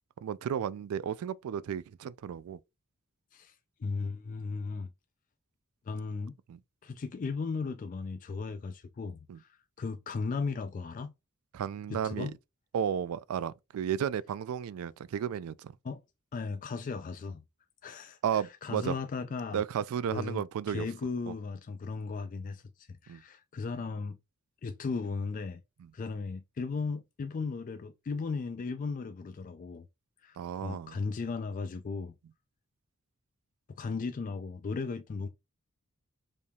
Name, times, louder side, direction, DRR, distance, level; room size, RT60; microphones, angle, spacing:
voice 1, 0.2-2.6 6.5-6.6 9.3-9.4 11.5-12.3 12.7-15.7 18.2-19.0 19.5-20.9 21.3-21.4 23.1-23.2 30.4-30.9, right 8 dB, 70° right, 0.3 m, -33 dB
voice 2, 3.8-4.9 5.9-6.4 6.8-11.1 11.9-12.4 15.8-16.0 16.3-17.4 17.8-19.6 20.1-24.2 24.6-25.6 25.9-29.9 30.2-32.1 33.8-35.3, left 4 dB, 40° left, 0.3 m, -36 dB
5.2 x 3.3 x 2.3 m
head